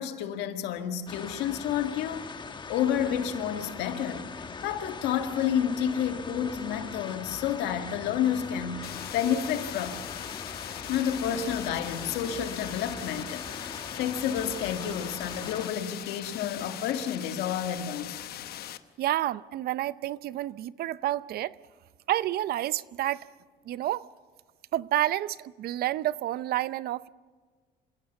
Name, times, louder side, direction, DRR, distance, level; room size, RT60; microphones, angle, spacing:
voice 1, 0.0-2.3 2.7-10.0 10.9-18.2, left 9 dB, 90° left, 1.8 m, -30 dB
sound 1, 1.1-15.7, left 5 dB, 25° left, 1.2 m, -41 dB
sound 2, 8.8-18.8, left 12 dB, 65° left, 1.0 m, -41 dB
voice 2, 19.0-21.6 22.1-23.3 23.7-24.1 24.7-27.1, right 14 dB, 65° right, 0.6 m, -29 dB
27.0 x 17.0 x 7.1 m
cardioid pair, 110°, 17 cm